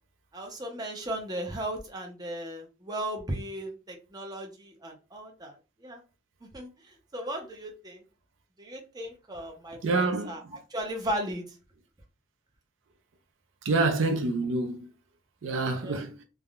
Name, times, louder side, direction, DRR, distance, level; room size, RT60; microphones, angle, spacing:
voice 1, 0.3-6.0 6.5-8.0 8.6-10.4 10.7-11.5 15.8-16.0, right 1 dB, 20° right, 0.6 m, -36 dB
voice 2, 9.8-10.3 13.6-14.9 15.4-16.1, right 3 dB, 70° right, 0.5 m, -27 dB
3.4 x 2.1 x 2.3 m
head